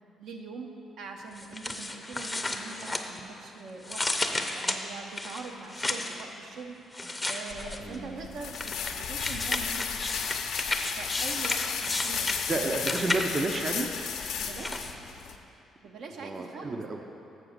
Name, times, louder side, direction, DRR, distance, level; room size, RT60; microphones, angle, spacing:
voice 1, 0.2-0.7 1.0-6.8 7.2-10.3 11.0-12.3 12.8-13.1 14.4-15.0 15.8-17.1, right 4 dB, 70° right, 2 dB, 0.8 m, -43 dB
sound 1, 1.4-3.5 3.8-6.2 6.9-8.0 8.5-13.5 14.2-14.9, left 2 dB, 10° left, 0.6 m, -33 dB
sound 2, 7.5-15.4, left 7 dB, 85° left, 0.6 m, -34 dB
voice 2, 7.8-8.2 12.5-13.9 16.2-17.0, right 2 dB, 35° right, 3 dB, 0.6 m, -31 dB
7.0 x 6.1 x 6.5 m, 2.9 s
cardioid pair, 90°, 0 cm